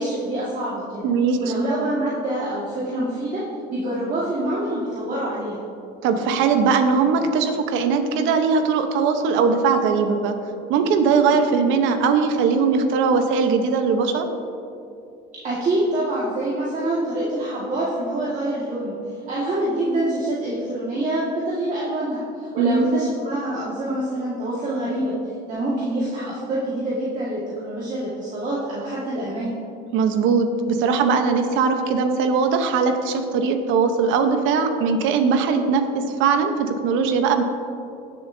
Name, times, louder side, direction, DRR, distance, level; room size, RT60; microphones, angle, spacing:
voice 1, 0.0-1.1 1.4-3.4 3.7-5.6 15.4-18.9 19.3-25.1 25.5-29.6, right 1 dB, 40° right, -7 dB, 1.8 m, -26 dB
voice 2, 1.0-1.4 6.0-10.4 10.7-14.3 22.6-23.0 29.9-37.4, right 5 dB, 80° right, 7 dB, 1.0 m, -20 dB
15.5 x 7.0 x 2.7 m, 2.6 s
cardioid pair, 125°, 20 cm